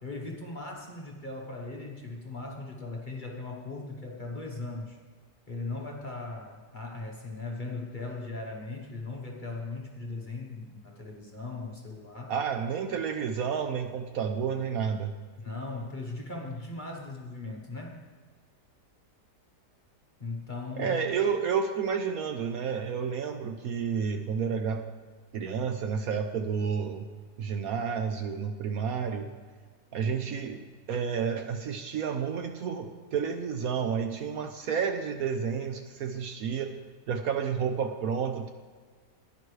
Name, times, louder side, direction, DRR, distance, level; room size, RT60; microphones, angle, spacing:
voice 1, 0.0-5.0 5.5-12.3 15.4-18.0 20.2-21.1, left 3 dB, 35° left, 0 dB, 1.0 m, -38 dB
voice 2, 12.3-15.1 20.8-24.8 25.3-27.0 27.4-29.3 29.9-30.6 30.9-36.7 37.1-38.5, right 6 dB, 65° right, 6 dB, 1.0 m, -30 dB
15.5 x 10.5 x 3.2 m, 1.5 s
omnidirectional pair, 1.8 m